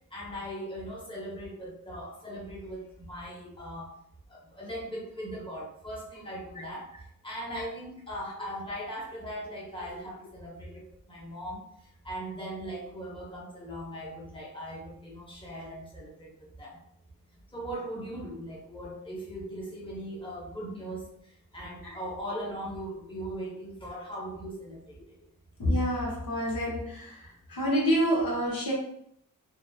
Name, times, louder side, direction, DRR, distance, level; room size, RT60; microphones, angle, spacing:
voice 1, 0.1-3.9 4.3-6.9 7.2-16.8 17.5-25.0, equal, 15° left, -4 dB, 0.9 m, -39 dB
voice 2, 25.6-27.1 27.5-28.7, equal, 70° left, -3 dB, 0.9 m, -27 dB
2.7 x 2.0 x 2.3 m, 0.70 s
cardioid pair, 55°, 36 cm